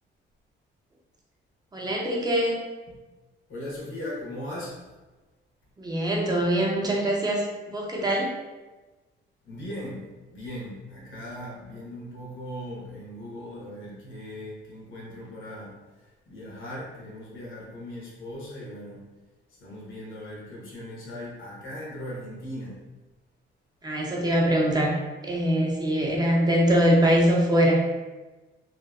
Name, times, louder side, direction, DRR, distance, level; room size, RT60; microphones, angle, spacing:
voice 1, 1.7-2.6 5.8-8.3 23.8-25.0 25.2-27.8, equal, 20° right, -2 dB, 0.5 m, -23 dB
voice 2, 3.5-4.8 9.4-10.0 10.3-15.7 16.3-19.0 19.6-22.8, left 1 dB, 80° left, -4 dB, 1.0 m, -38 dB
2.7 x 2.2 x 2.3 m, 1.2 s
cardioid pair, 90°, 20 cm